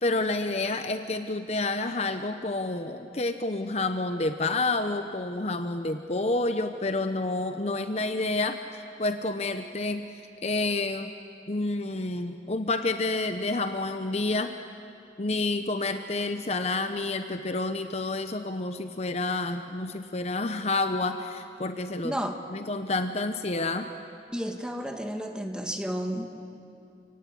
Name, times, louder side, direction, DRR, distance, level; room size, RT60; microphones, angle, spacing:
voice 1, 0.0-10.1 10.4-11.1 11.5-14.6 15.2-22.1 22.5-23.9, left 2 dB, 35° left, 8 dB, 0.8 m, -29 dB
voice 2, 22.0-22.4 24.3-26.3, equal, 5° right, 4 dB, 1.6 m, -32 dB
29.0 x 18.0 x 8.7 m, 2.5 s
head